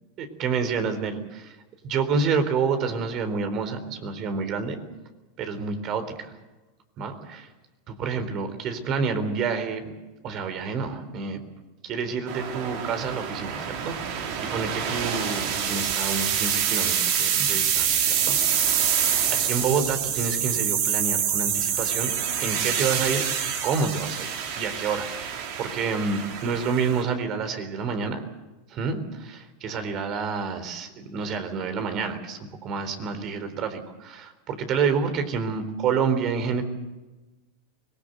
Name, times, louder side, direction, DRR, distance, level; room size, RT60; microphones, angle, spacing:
voice 1, 0.2-1.6 1.8-4.8 5.4-6.3 7.0-7.5 7.9-9.8 10.2-11.4 11.8-18.9 19.3-22.1 22.4-23.3 23.6-24.3 24.6-28.3 28.7-36.6, right 5 dB, 40° right, 9 dB, 3.9 m, -28 dB
sound 1, 12.3-27.0, right 8 dB, 60° right, 5.0 m, -26 dB
24.5 x 19.5 x 8.1 m, 1.1 s
supercardioid pair, 125°, 0 cm